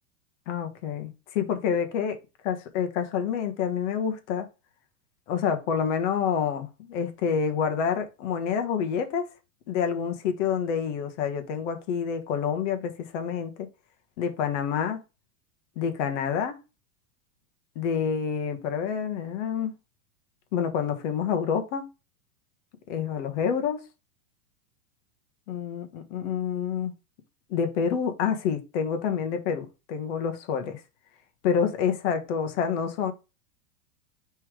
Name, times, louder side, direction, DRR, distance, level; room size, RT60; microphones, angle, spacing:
voice 1, 0.5-2.2 2.4-4.5 5.3-9.3 9.7-13.7 14.2-15.0 15.8-16.6 17.7-19.7 20.5-21.9 22.9-23.8 25.5-26.9 27.5-30.8 31.4-33.1, left 7 dB, 50° left, 1.4 m, -28 dB
5.5 x 3.6 x 4.9 m
supercardioid pair, 145°, 46 cm